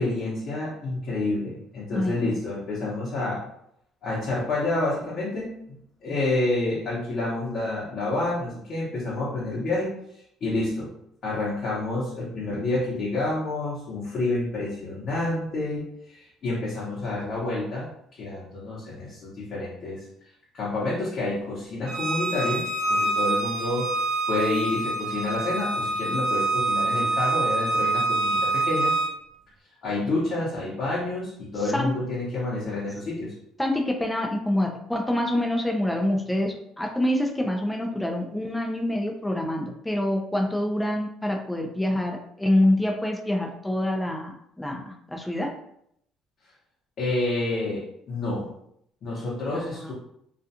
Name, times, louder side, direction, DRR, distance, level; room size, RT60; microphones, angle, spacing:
voice 1, 0.0-3.4 4.0-5.8 6.0-10.9 11.2-17.9 18.2-20.1 20.5-23.9 24.3-28.9 29.8-33.3 47.0-48.5 49.0-49.9, left 2 dB, 50° left, -7 dB, 0.9 m, -29 dB
voice 2, 1.9-2.3 31.6-32.0 33.6-45.6 49.5-49.9, left 1 dB, 10° left, 1 dB, 0.4 m, -26 dB
Bowed string instrument, 21.9-29.1, right 2 dB, 60° right, 0.4 m, -26 dB
2.4 x 2.3 x 2.7 m, 0.72 s
cardioid pair, 110°, 0 cm